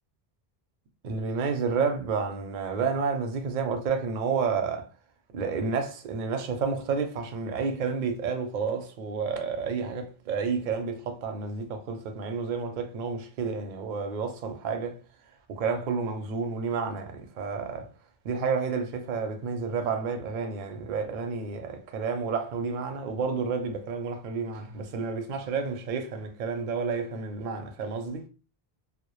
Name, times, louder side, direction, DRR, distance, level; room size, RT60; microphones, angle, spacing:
voice 1, 1.0-4.9 5.3-15.0 15.5-17.9 18.2-28.2, right 5 dB, 60° right, 0.6 m, -30 dB
2.1 x 2.0 x 2.9 m
omnidirectional pair, 1.0 m